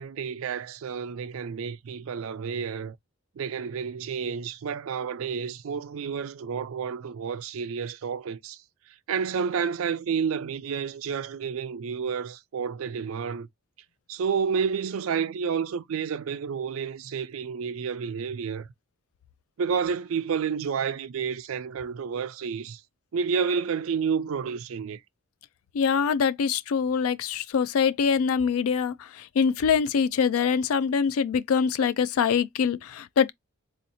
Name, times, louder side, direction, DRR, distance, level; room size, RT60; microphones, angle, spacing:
voice 1, 0.0-3.0 3.4-8.6 9.1-13.5 14.1-18.7 19.6-22.8 23.1-25.0, right 6 dB, 65° right, 0.4 m, -30 dB
voice 2, 25.7-33.3, left 6 dB, 75° left, 0.3 m, -24 dB
3.9 x 2.8 x 2.6 m
head